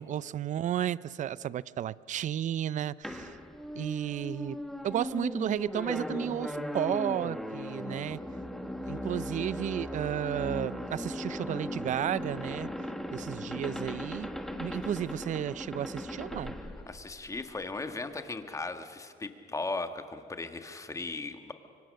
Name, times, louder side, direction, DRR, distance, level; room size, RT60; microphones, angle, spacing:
voice 1, 0.0-3.4 3.7-4.6 4.8-8.2 8.8-12.7 13.1-14.3 14.6-16.6, right 10 dB, 45° right, 19 dB, 0.5 m, -33 dB
sound 1, 3.0-17.6, left 1 dB, ahead, 1.5 m, -38 dB
voice 2, 16.9-21.5, left 3 dB, 20° left, 8 dB, 1.5 m, -37 dB
24.5 x 24.5 x 6.5 m, 2.4 s
cardioid pair, 110°, 17 cm